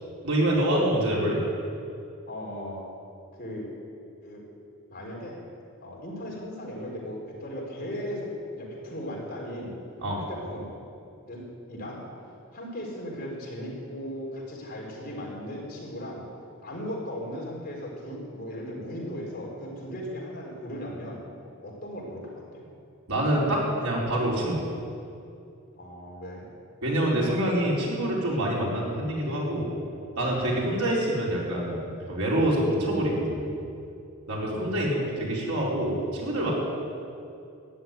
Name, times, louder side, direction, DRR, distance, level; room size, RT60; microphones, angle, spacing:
voice 1, 0.2-1.4 10.0-10.2 23.1-24.6 26.8-29.7 30.2-31.8 32.1-33.5 34.3-36.5, right 1 dB, 90° right, -4 dB, 4.7 m, -26 dB
voice 2, 2.3-2.9 3.4-3.7 4.2-4.4 4.9-5.4 5.8-9.8 10.3-10.7 11.3-12.1 12.5-16.2 16.6-21.3 21.6-22.6 25.7-26.5 30.5-30.7 34.5-34.8, equal, 40° left, -3 dB, 4.4 m, -37 dB
13.5 x 10.5 x 9.3 m, 2.5 s
head